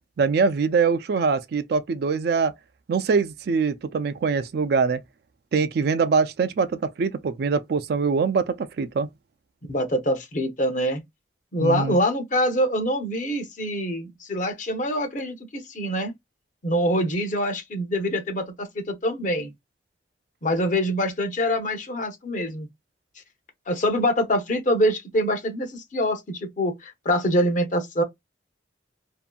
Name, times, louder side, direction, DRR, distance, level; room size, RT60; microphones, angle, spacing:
voice 1, 0.2-2.5 2.9-5.0 5.5-9.1 11.6-12.0, right 5 dB, 55° right, 0.3 m, -23 dB
voice 2, 9.7-11.0 11.5-16.1 16.6-19.5 20.4-22.7 23.7-28.0, equal, 45° left, 0.7 m, -25 dB
2.7 x 2.5 x 2.2 m
head